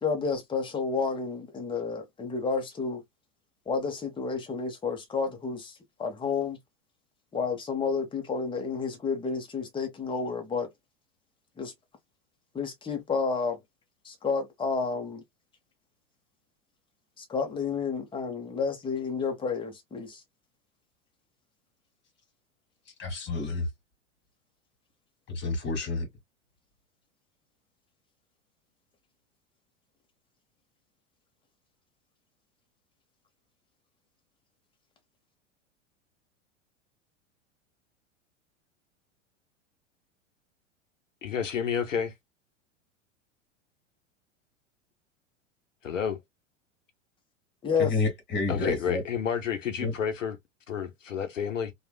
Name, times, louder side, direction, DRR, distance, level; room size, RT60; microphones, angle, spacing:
voice 1, 0.0-3.0 3.7-6.6 7.3-10.7 11.6-11.7 12.5-13.6 14.0-15.2 17.2-20.2 47.6-47.9 48.6-48.8, left 5 dB, 15° left, 1.0 m, -30 dB
voice 2, 23.0-23.7 25.3-26.1 47.8-49.0 49.8-49.9, left 3 dB, 30° left, 1.6 m, -29 dB
voice 3, 41.2-42.1 45.8-46.2 48.5-50.4 50.7-51.7, left 7 dB, 85° left, 0.8 m, -30 dB
3.2 x 2.4 x 2.2 m
hypercardioid pair, 90°, 37 cm